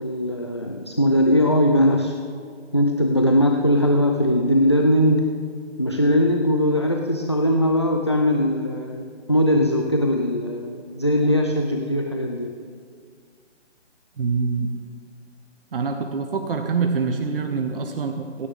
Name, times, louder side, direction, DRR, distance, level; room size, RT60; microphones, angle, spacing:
voice 1, 0.0-2.2 2.7-5.3 5.8-12.5, equal, 25° left, 2 dB, 0.4 m, -20 dB
voice 2, 14.2-14.7 15.7-18.5, right 5 dB, 50° right, 5 dB, 1.0 m, -25 dB
26.0 x 9.6 x 3.6 m, 2.1 s
hypercardioid pair, 155°, 36 cm